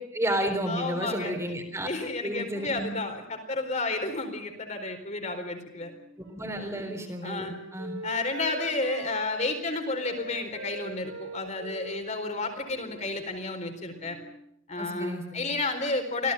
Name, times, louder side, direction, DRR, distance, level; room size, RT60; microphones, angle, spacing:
voice 1, 0.1-1.9 2.2-2.9 6.3-7.9 14.8-15.4, right 1 dB, 15° right, 4 dB, 3.8 m, -31 dB
voice 2, 0.7-1.4 1.8-5.9 6.6-6.8 7.2-7.5 8.0-14.2 14.7-16.3, left 3 dB, 35° left, 5 dB, 4.3 m, -31 dB
Wind instrument woodwind instrument, 5.6-9.6 10.0-14.4, right 1 dB, 70° right, 3.8 m, -43 dB
26.0 x 17.0 x 8.9 m, 0.69 s
head